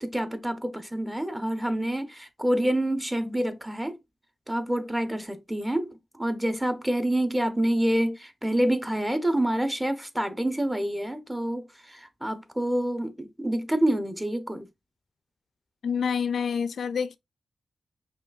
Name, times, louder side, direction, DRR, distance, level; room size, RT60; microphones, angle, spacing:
voice 1, 0.0-4.0 4.5-14.7, right 1 dB, 10° right, 0.6 m, -27 dB
voice 2, 15.8-17.2, left 6 dB, 80° left, 0.3 m, -27 dB
5.6 x 2.4 x 2.3 m
cardioid pair, 75°, 0 cm